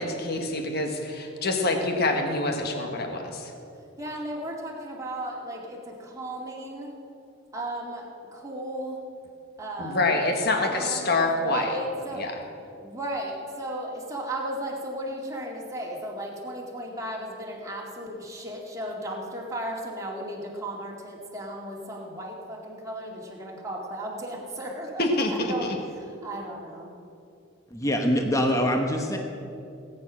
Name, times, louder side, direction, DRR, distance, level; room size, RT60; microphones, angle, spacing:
voice 1, 0.0-3.5 9.8-11.7 12.1-12.3 25.0-25.5, left 2 dB, 50° left, 3 dB, 1.6 m, -26 dB
voice 2, 4.0-6.9 7.5-9.0 9.6-10.2 10.7-12.2 12.8-26.9, right 1 dB, 15° right, -2 dB, 2.3 m, -35 dB
voice 3, 27.7-29.2, equal, 15° left, 3 dB, 1.0 m, -24 dB
18.5 x 9.4 x 6.3 m, 2.7 s
head